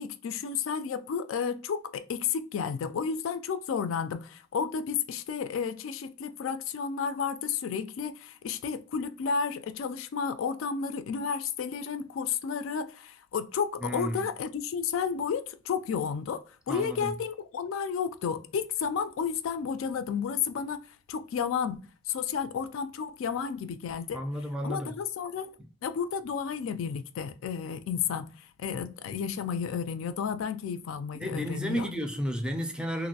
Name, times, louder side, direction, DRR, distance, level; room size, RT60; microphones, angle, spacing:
voice 1, 0.0-21.8 22.1-24.2 24.6-25.5 25.8-31.9, left 6 dB, 90° left, 0.3 m, -32 dB
voice 2, 13.8-14.3 16.7-17.1 24.1-24.9 25.6-25.7 31.1-33.1, equal, 5° right, 0.4 m, -32 dB
3.0 x 2.5 x 2.7 m
head